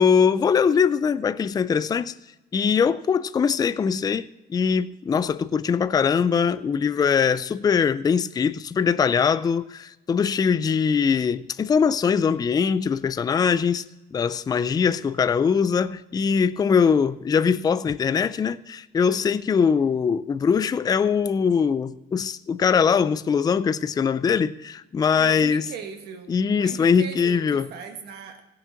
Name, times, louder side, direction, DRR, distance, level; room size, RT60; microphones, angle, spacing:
voice 1, 0.0-2.1 2.5-13.8 14.1-25.6 26.3-27.6, left 6 dB, 25° left, 0.4 m, -22 dB
voice 2, 25.2-28.4, right 7 dB, 75° right, 1.8 m, -38 dB
16.5 x 7.1 x 5.8 m
cardioid pair, 110°, 17 cm